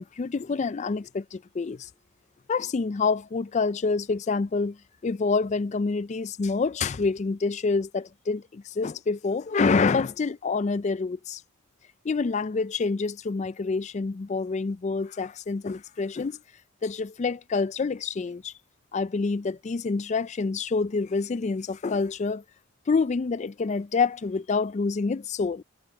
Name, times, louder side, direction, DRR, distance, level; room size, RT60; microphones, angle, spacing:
voice 1, 0.0-1.9 2.5-4.8 5.0-11.4 12.0-16.4 16.8-18.5 18.9-22.4 22.9-25.6, left 4 dB, 35° left, 0.3 m, -27 dB
head